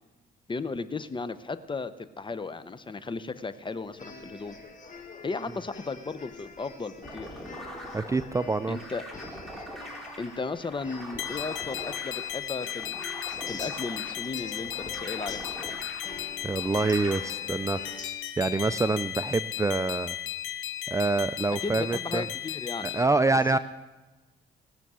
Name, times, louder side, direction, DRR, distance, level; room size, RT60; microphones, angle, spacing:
voice 1, 0.5-4.6 5.2-7.3 8.7-9.0 10.2-12.9 13.5-15.8 21.6-23.0 23.5-23.6, left 4 dB, 25° left, 13 dB, 0.7 m, -35 dB
sound 1, 3.9-18.1, left 4 dB, 40° left, 1.9 m, -46 dB
sound 2, 7.0-17.2, equal, ahead, 3.0 m, -43 dB
voice 2, 7.9-8.8 16.4-18.0 18.4-20.1 20.9-22.3 22.8-23.6, right 3 dB, 15° right, 12 dB, 0.4 m, -26 dB
sound 3, 11.2-23.0, left 11 dB, 85° left, 0.9 m, -35 dB
18.5 x 6.8 x 6.2 m, 1.2 s
cardioid pair, 90°, 20 cm